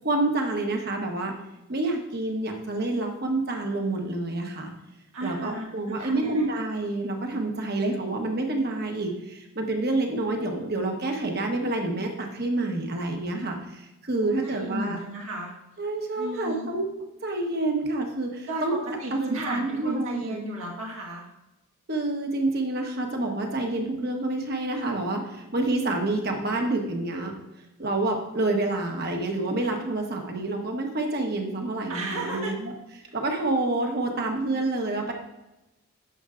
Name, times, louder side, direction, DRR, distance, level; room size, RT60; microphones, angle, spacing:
voice 1, 0.0-1.3 1.7-4.7 5.2-15.0 15.8-16.9 17.2-20.4 21.9-27.3 27.8-32.7 33.1-35.1, right 2 dB, 45° right, 2 dB, 1.2 m, -28 dB
voice 2, 5.1-6.6 14.2-15.6 16.2-16.8 18.5-21.3 31.9-32.5, right 1 dB, 75° right, -3 dB, 1.6 m, -34 dB
11.5 x 7.8 x 2.5 m, 0.98 s
head